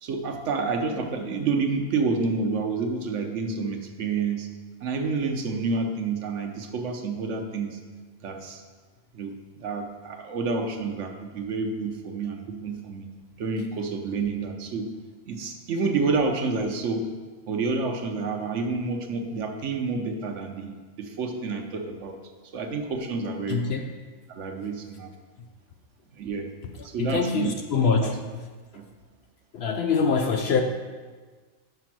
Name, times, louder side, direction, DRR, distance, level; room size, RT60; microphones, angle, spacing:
voice 1, 0.0-4.5 4.8-7.8 8.2-8.6 9.1-13.1 13.4-14.9 15.3-17.1 17.5-20.7 21.0-22.2 22.5-23.8 24.3-25.1 26.2-26.5 26.8-27.5 28.0-28.1 28.7-28.9, right 4 dB, 70° right, 4 dB, 1.0 m, -29 dB
voice 2, 23.5-23.8 26.6-28.2 29.5-30.6, left 5 dB, 65° left, 5 dB, 0.7 m, -24 dB
5.9 x 4.9 x 5.9 m, 1.4 s
omnidirectional pair, 1.4 m